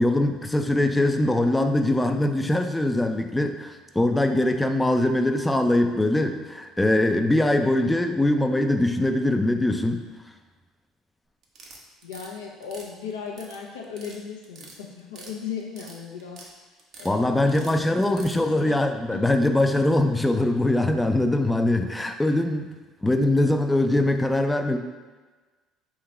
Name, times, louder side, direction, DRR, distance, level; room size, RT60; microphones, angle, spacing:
voice 1, 0.0-10.0 17.0-22.7 23.0-24.8, left 1 dB, 10° left, 6 dB, 0.4 m, -22 dB
sound 1, 11.4-12.3 12.6-13.6 13.8-14.2 14.4-15.3 15.6-16.5 16.8-17.1 17.5-18.4, right 3 dB, 60° right, 0.8 m, -45 dB
voice 2, 12.0-16.4 17.0-17.9 18.2-18.8 19.1-19.2 19.7-20.2, left 6 dB, 85° left, 0 dB, 0.6 m, -37 dB
3.6 x 2.9 x 4.3 m, 1.3 s
hypercardioid pair, 65°, 0 cm